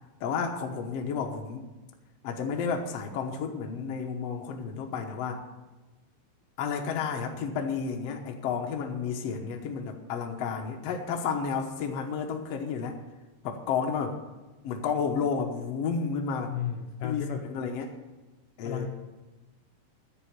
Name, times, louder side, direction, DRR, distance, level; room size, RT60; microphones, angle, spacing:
voice 1, 0.2-1.6 2.2-5.5 6.6-13.0 13.4-14.2 14.6-16.5 17.0-18.0 18.6-18.9, left 6 dB, 90° left, 3 dB, 1.4 m, -31 dB
voice 2, 16.5-17.4 18.6-18.9, left 8 dB, 75° left, 3 dB, 2.0 m, -33 dB
10.5 x 8.2 x 9.9 m, 1.1 s
omnidirectional pair, 4.6 m